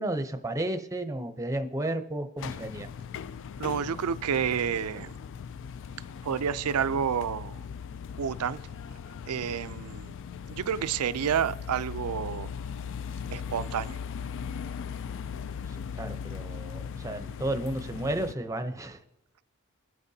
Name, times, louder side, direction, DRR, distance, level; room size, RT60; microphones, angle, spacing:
voice 1, 0.0-2.9 16.0-19.0, right 1 dB, 15° right, 0.6 m, -32 dB
sound 1, 2.4-18.3, left 7 dB, 60° left, 0.3 m, -39 dB
voice 2, 3.6-5.1 6.2-7.6 8.2-8.6 9.3-10.1 10.5-12.5 13.3-14.0, right 7 dB, 90° right, 0.4 m, -29 dB
22.5 x 8.6 x 2.7 m
head